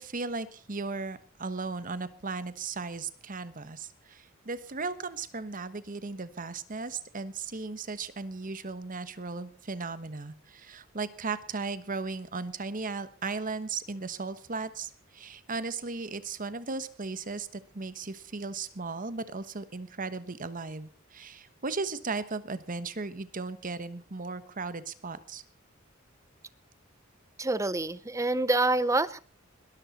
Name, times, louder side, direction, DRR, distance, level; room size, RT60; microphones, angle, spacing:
voice 1, 0.0-25.4, right 4 dB, 40° right, 13 dB, 1.2 m, -36 dB
voice 2, 27.4-29.2, right 2 dB, 15° right, 17 dB, 0.6 m, -26 dB
21.0 x 13.0 x 4.2 m, 0.39 s
head